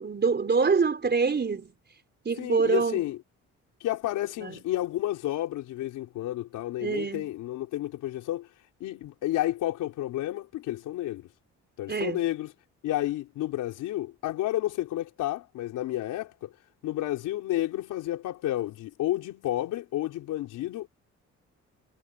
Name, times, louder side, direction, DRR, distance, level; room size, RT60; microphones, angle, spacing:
voice 1, 0.0-1.7 2.2-3.1 4.4-4.6 6.8-7.3 11.9-12.2, right 5 dB, 35° right, 4.8 m, -25 dB
voice 2, 2.4-3.2 3.8-8.5 8.8-11.3 11.8-12.5 12.8-16.5 16.8-20.9, left 14 dB, 90° left, 4.6 m, -31 dB
cardioid pair, 90°, 30 cm